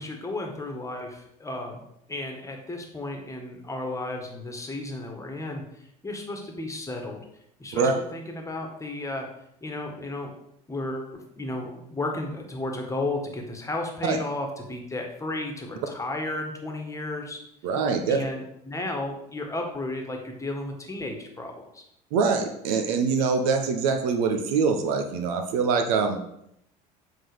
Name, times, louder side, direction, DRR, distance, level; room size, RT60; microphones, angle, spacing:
voice 1, 0.0-7.2 7.6-9.3 9.6-10.3 10.7-17.4 18.1-21.8, left 2 dB, 15° left, 3 dB, 1.6 m, -33 dB
voice 2, 17.6-18.2 22.1-26.2, right 5 dB, 65° right, 5 dB, 1.0 m, -24 dB
7.6 x 4.0 x 5.1 m, 0.77 s
hypercardioid pair, 70°, 20 cm